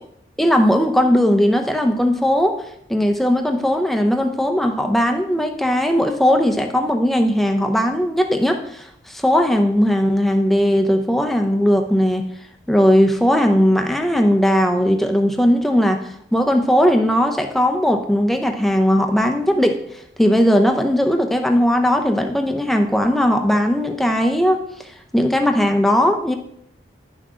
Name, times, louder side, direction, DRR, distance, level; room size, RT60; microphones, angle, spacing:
voice 1, 0.4-2.6 2.9-12.3 12.7-19.8 20.2-24.9 25.1-26.4, equal, ahead, 4 dB, 0.6 m, -18 dB
10.5 x 5.9 x 3.7 m, 0.74 s
head